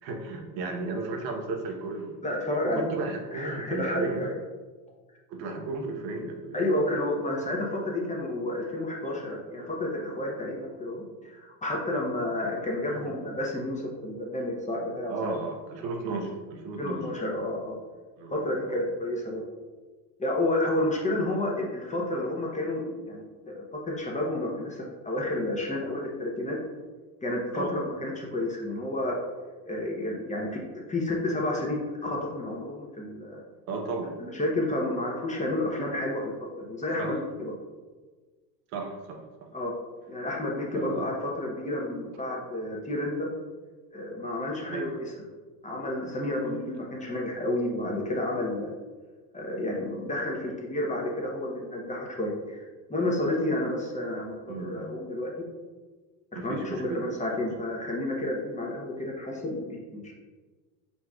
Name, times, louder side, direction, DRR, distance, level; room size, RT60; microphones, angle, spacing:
voice 1, 0.0-2.1 2.6-4.3 5.3-6.7 12.9-13.2 15.1-17.1 18.2-18.3 18.7-18.8 27.5-27.8 33.7-34.1 37.0-37.1 38.7-39.2 40.7-41.1 44.7-44.9 46.5-46.6 54.5-54.9 56.4-57.1, right 3 dB, 85° right, 2 dB, 0.9 m, -34 dB
voice 2, 2.2-2.9 3.3-4.3 6.5-15.3 15.8-15.9 16.8-17.8 18.3-19.4 20.2-26.6 27.2-29.2 29.6-33.4 34.2-37.5 39.5-39.7 40.1-43.3 43.9-45.1 45.6-48.7 49.3-55.3 56.3-60.1, left 1 dB, 15° left, -2 dB, 0.8 m, -30 dB
4.6 x 4.0 x 2.3 m, 1.4 s
supercardioid pair, 105°, 50 cm